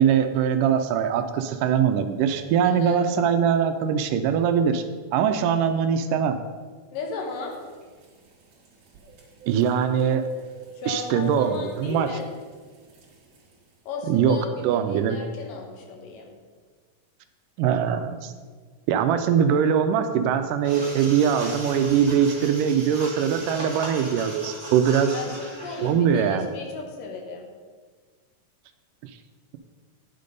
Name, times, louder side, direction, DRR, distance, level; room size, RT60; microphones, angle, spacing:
voice 1, 0.0-4.8 5.1-6.4 9.5-10.3 10.9-12.2 14.1-15.2 17.6-18.3 18.9-25.2 25.8-26.5, right 8 dB, 80° right, 8 dB, 2.1 m, -22 dB
voice 2, 2.6-3.0 6.9-7.6 10.8-12.2 13.9-16.3 25.1-27.5, left 4 dB, 75° left, 2 dB, 3.0 m, -35 dB
sound 1, 7.2-13.8, right 6 dB, 50° right, 2.3 m, -47 dB
sound 2, 20.6-25.9, right 1 dB, 10° right, 2.1 m, -37 dB
9.6 x 6.8 x 5.2 m, 1.5 s
omnidirectional pair, 3.9 m